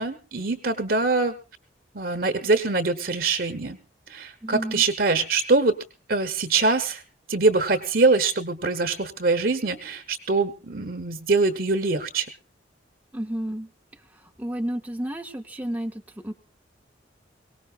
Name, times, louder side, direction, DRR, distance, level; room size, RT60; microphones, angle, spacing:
voice 1, 0.0-1.3 1.9-3.8 4.1-5.8 6.1-7.0 7.3-12.3, right 3 dB, 55° right, 7 dB, 1.0 m, -23 dB
voice 2, 4.4-4.8 13.1-13.7 14.4-16.3, right 1 dB, 10° right, 4 dB, 0.7 m, -31 dB
23.0 x 18.0 x 2.4 m, 0.29 s
head